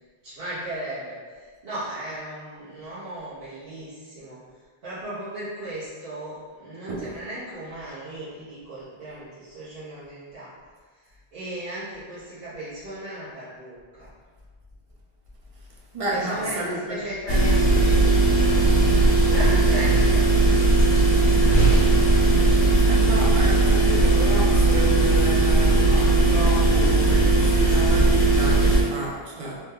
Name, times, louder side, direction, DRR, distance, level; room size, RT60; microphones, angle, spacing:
voice 1, 0.2-4.4 4.8-10.5 11.3-14.1 16.1-18.7 19.3-20.9, right 1 dB, 70° right, -13 dB, 1.1 m, -36 dB
voice 2, 15.9-17.0 22.9-29.6, right 1 dB, 45° right, -4 dB, 0.5 m, -31 dB
sound 1, 17.3-28.8, right 2 dB, 60° left, 0.7 m, -18 dB
2.9 x 2.2 x 3.4 m, 1.5 s
omnidirectional pair, 1.0 m